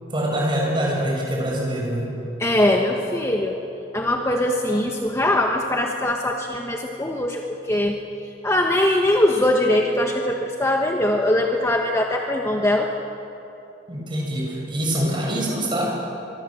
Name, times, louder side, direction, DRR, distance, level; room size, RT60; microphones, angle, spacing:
voice 1, 0.1-2.1 13.9-16.0, right 1 dB, 25° right, -2 dB, 7.3 m, -24 dB
voice 2, 2.4-3.6 3.9-8.0 8.4-12.9, left 1 dB, 15° left, 1 dB, 1.3 m, -21 dB
24.5 x 24.0 x 7.7 m, 2.9 s
head